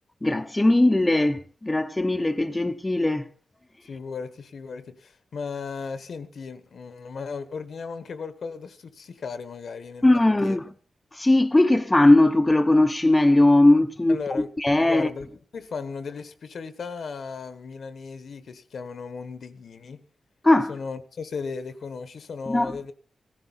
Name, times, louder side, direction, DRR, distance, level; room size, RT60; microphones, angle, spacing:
voice 1, 0.2-3.3 10.0-10.6 11.1-14.2 14.6-15.1 20.4-20.7 22.5-22.7, left 2 dB, 15° left, 0.8 m, -19 dB
voice 2, 3.8-10.6 14.1-14.5 14.8-20.1 20.7-22.9, left 5 dB, 70° left, 1.2 m, -36 dB
17.0 x 15.0 x 4.2 m
wide cardioid pair, 100°, 0 cm